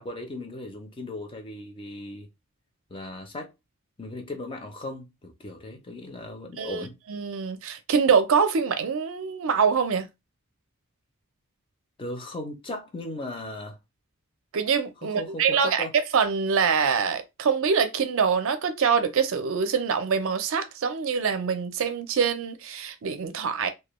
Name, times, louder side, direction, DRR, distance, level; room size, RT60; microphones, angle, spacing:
voice 1, 0.0-2.3 2.9-3.5 4.0-7.0 12.0-13.8 15.0-15.9, left 1 dB, 25° left, 0.5 m, -37 dB
voice 2, 6.6-10.1 14.5-15.8 16.1-23.7, right 6 dB, 65° right, 0.4 m, -24 dB
2.2 x 2.2 x 3.0 m
head